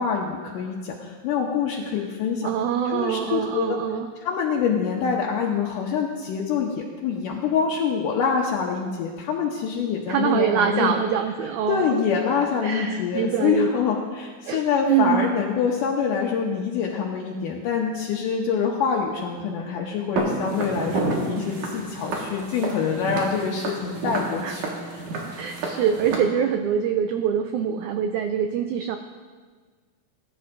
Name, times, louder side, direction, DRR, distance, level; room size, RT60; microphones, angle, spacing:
voice 1, 0.0-2.5 2.9-3.8 4.2-11.0 11.7-24.6 25.0-25.1, left 6 dB, 75° left, -2 dB, 2.3 m, -25 dB
voice 2, 2.4-4.1 10.1-12.0 12.6-13.7 14.5-15.3 24.4-24.6 25.4-29.0, right 8 dB, 90° right, 7 dB, 1.7 m, -24 dB
Walk footsteps, 20.2-26.2, right 3 dB, 65° right, 2.9 m, -30 dB
20.0 x 10.5 x 2.6 m, 1.5 s
omnidirectional pair, 4.0 m